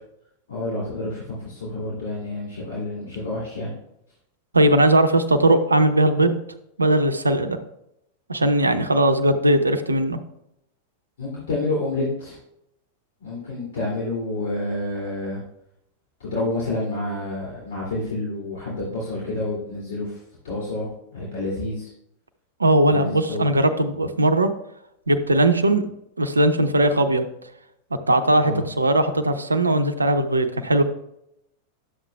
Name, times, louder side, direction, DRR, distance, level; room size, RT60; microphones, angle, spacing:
voice 1, 0.5-3.7 11.2-12.4 13.2-15.4 16.2-20.2 20.4-21.9 22.9-23.5 28.4-28.6, left 2 dB, 60° left, -6 dB, 2.7 m, -29 dB
voice 2, 4.5-6.4 6.8-7.6 8.3-10.2 22.6-24.5 25.1-25.8 26.2-27.2 28.1-30.8, right 1 dB, 80° right, 9 dB, 0.7 m, -19 dB
11.5 x 7.4 x 2.3 m, 0.79 s
figure-of-eight pair, 90°, 0 cm